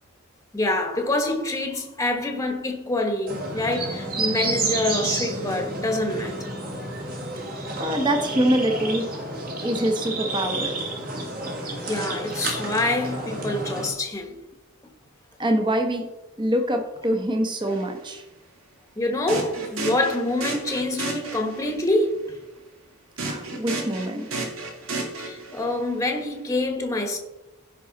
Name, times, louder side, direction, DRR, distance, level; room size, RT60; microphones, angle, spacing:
voice 1, 0.5-6.5 11.8-14.4 19.0-22.4 25.2-27.2, left 2 dB, 15° left, 1.4 m, -26 dB
sound 1, 3.3-13.9, right 2 dB, 45° right, 2.4 m, -30 dB
voice 2, 7.8-9.1 9.6-10.7 15.4-16.1 16.4-18.2 23.2-24.3, right 1 dB, 20° right, 1.3 m, -24 dB
sound 2, 17.7-17.8 19.3-21.7 23.2-25.8, right 3 dB, 65° right, 2.1 m, -32 dB
16.0 x 5.5 x 4.1 m
head